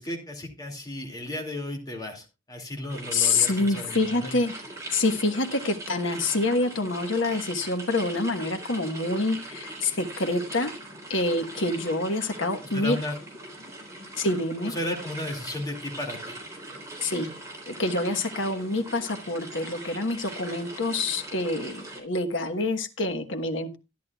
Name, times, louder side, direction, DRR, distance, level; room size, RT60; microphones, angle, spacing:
voice 1, 0.0-4.4 12.7-13.2 14.6-16.4, left 1 dB, 20° left, 2 dB, 2.4 m, -34 dB
sound 1, 2.9-22.0, right 1 dB, 15° right, 3.8 m, -41 dB
voice 2, 3.1-4.5 4.9-10.7 11.1-13.0 14.2-14.7 17.0-17.3 17.7-23.8, left 2 dB, 75° left, 7 dB, 1.4 m, -27 dB
13.0 x 10.5 x 2.4 m, 0.26 s
head